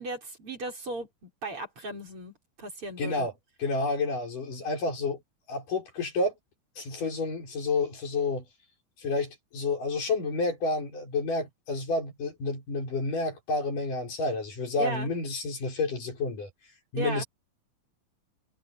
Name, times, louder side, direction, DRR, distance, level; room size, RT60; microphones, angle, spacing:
voice 1, 0.0-3.3 14.8-15.1 16.9-17.2, right 2 dB, 40° right, 7.1 m, -36 dB
voice 2, 3.0-3.3 3.6-5.2 5.5-6.3 6.8-8.4 9.0-16.5 16.9-17.2, left 3 dB, 85° left, 7.7 m, -30 dB
omnidirectional pair, 3.6 m